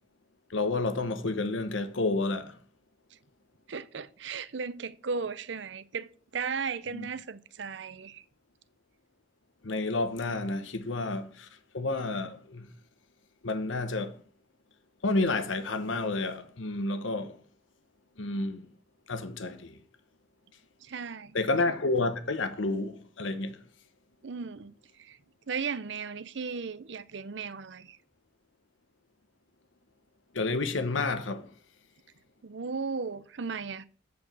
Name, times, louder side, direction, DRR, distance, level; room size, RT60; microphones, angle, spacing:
voice 1, 0.5-2.6 6.9-7.1 9.6-11.5 11.7-12.7 13.4-14.2 15.0-17.4 18.2-18.7 19.1-19.8 21.3-23.6 30.3-31.5, left 3 dB, 75° left, 1.0 m, -30 dB
voice 2, 3.7-8.2 20.8-21.4 24.2-25.2 25.5-28.0 32.4-33.8, right 5 dB, 65° right, 0.6 m, -36 dB
8.4 x 4.7 x 7.4 m
head